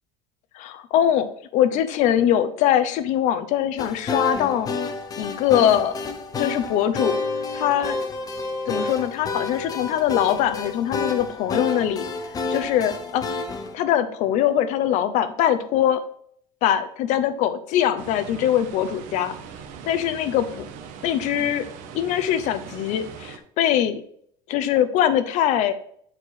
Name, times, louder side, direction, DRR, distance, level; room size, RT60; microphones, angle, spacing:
voice 1, 0.5-4.7 5.2-6.0 6.4-7.2 7.5-8.0 8.7-12.0 12.5-13.4 13.7-16.0 16.6-19.4 19.8-20.4 21.0-21.6 21.9-24.0 24.5-25.7, left 10 dB, 55° left, 12 dB, 0.9 m, -22 dB
sound 1, 3.8-13.8, left 3 dB, 25° left, 0.9 m, -29 dB
sound 2, 18.0-23.4, right 7 dB, 65° right, 1.2 m, -40 dB
9.8 x 4.5 x 4.7 m, 0.65 s
cardioid pair, 150°, 14 cm